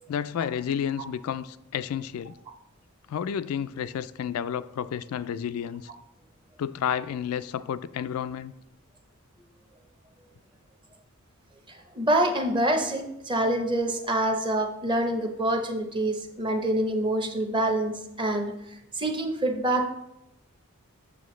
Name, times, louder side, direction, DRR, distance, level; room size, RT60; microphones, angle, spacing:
voice 1, 0.1-2.3 3.1-5.9 6.6-8.5, left 8 dB, 75° left, 0.3 m, -31 dB
voice 2, 11.7-18.5 19.0-19.9, right 1 dB, 20° right, 0.7 m, -26 dB
8.2 x 7.3 x 3.1 m
head